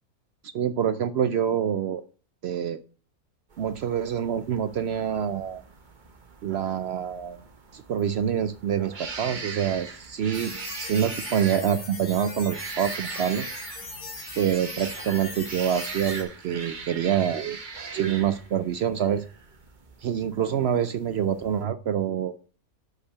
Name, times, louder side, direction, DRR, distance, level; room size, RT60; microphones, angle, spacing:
voice 1, 0.5-2.0 2.4-2.8 3.6-5.6 6.4-7.4 7.7-13.5 14.4-17.6 17.9-19.3 20.0-22.3, right 9 dB, 65° right, 12 dB, 0.6 m, -26 dB
sound 1, 3.5-21.6, right 4 dB, 35° right, 1.0 m, -41 dB
sound 2, 10.3-16.2, left 3 dB, 80° left, 2.6 m, -40 dB
6.6 x 5.8 x 5.5 m, 0.39 s
omnidirectional pair, 1.5 m